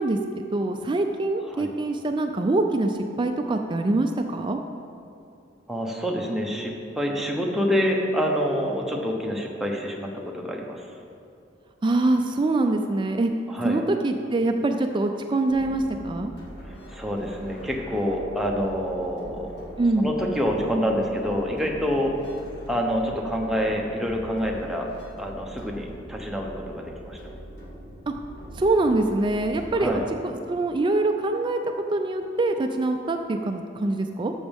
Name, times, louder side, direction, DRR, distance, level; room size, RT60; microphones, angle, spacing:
voice 1, 0.0-4.6 11.8-13.3 13.6-16.3 19.8-20.1 28.6-31.6 31.9-34.3, right 2 dB, 25° right, 5 dB, 0.3 m, -24 dB
voice 2, 5.7-10.9 13.5-13.8 16.6-22.1 22.7-24.9 25.2-27.3 29.7-30.0, equal, ahead, -1 dB, 0.9 m, -27 dB
sound 1, 15.5-29.9, equal, 60° left, 1.5 m, -42 dB
12.5 x 7.1 x 3.5 m, 2.6 s
head